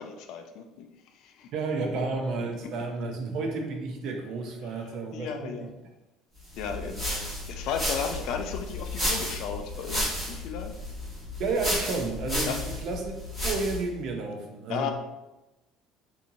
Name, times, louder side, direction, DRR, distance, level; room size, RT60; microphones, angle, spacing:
voice 1, 0.0-1.5 2.7-2.8 4.6-5.7 6.6-10.7 12.5-12.6 14.7-14.9, left 6 dB, 55° left, 5 dB, 0.4 m, -35 dB
voice 2, 1.5-5.7 6.7-7.2 11.4-14.9, right 3 dB, 45° right, 3 dB, 0.6 m, -32 dB
sound 1, 6.5-13.9, left 1 dB, 10° right, 1.3 m, -32 dB
4.3 x 2.7 x 2.6 m, 0.98 s
cardioid pair, 175°, 0 cm